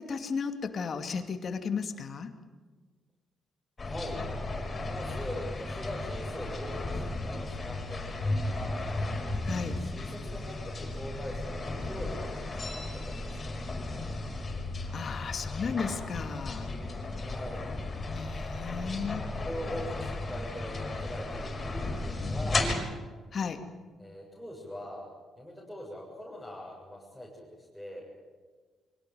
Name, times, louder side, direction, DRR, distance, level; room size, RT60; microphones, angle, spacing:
voice 1, 0.0-2.3 9.4-9.8 14.9-16.7 18.1-19.2 23.3-23.6, left 5 dB, 50° left, 7 dB, 2.6 m, -34 dB
sound 1, 3.8-22.8, left 2 dB, 30° left, 5.8 m, -35 dB
voice 2, 3.8-4.2 4.8-8.8 9.7-13.7 17.1-17.6 19.4-22.7 24.0-25.1 25.4-28.1, left 1 dB, ahead, -4 dB, 7.5 m, -42 dB
24.0 x 18.0 x 9.5 m, 1.4 s
cardioid pair, 90°, 0 cm